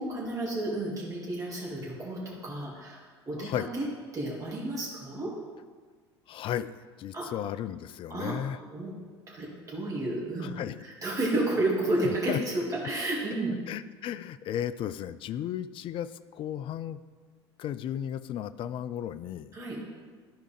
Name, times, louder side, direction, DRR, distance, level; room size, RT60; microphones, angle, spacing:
voice 1, 0.0-3.9 4.1-5.3 7.1-7.3 8.1-8.3 8.7-8.9 9.3-13.5 19.5-19.8, right 2 dB, 25° right, -5 dB, 2.1 m, -31 dB
voice 2, 3.4-3.7 6.3-8.6 10.4-10.8 12.3-12.4 13.7-17.0 17.6-19.5, left 10 dB, 40° left, 14 dB, 0.3 m, -34 dB
12.0 x 4.9 x 3.3 m, 1.5 s
figure-of-eight pair, 70°, 14 cm